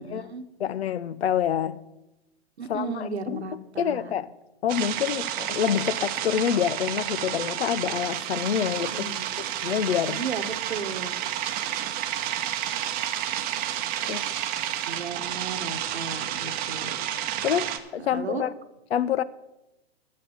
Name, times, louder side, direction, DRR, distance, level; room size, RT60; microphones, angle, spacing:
voice 1, 0.0-0.4 2.6-4.1 8.9-9.5 10.1-11.2 14.9-17.1 18.0-18.4, right 4 dB, 85° right, 1.1 m, -35 dB
voice 2, 0.6-1.8 2.7-3.4 3.8-4.3 4.6-9.0 9.6-10.2 14.1-14.3 17.4-18.5 18.9-19.2, left 9 dB, 75° left, 0.7 m, -27 dB
sound 1, 4.7-17.8, right 11 dB, 30° right, 0.8 m, -30 dB
9.8 x 7.5 x 7.0 m
hypercardioid pair, 120°, 31 cm